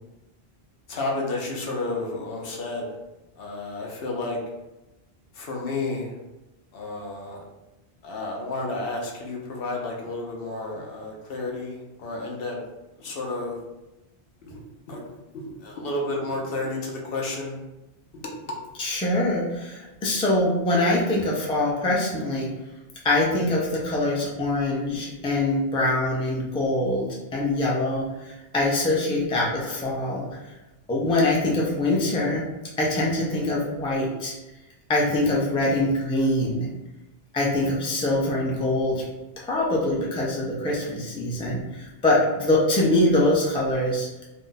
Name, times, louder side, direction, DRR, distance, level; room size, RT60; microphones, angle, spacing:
voice 1, 0.9-2.9 3.4-4.4 5.3-6.1 6.7-7.4 8.0-12.6 13.0-13.6 14.4-14.6 14.9-17.6 18.1-18.4, left 2 dB, 65° left, -1 dB, 0.8 m, -31 dB
voice 2, 18.8-22.5 23.0-30.4 30.9-32.5 32.8-34.3 34.9-36.7 37.3-39.0 39.4-44.1, left 1 dB, 10° left, -4 dB, 0.4 m, -24 dB
2.6 x 2.1 x 3.8 m, 1.0 s
omnidirectional pair, 1.1 m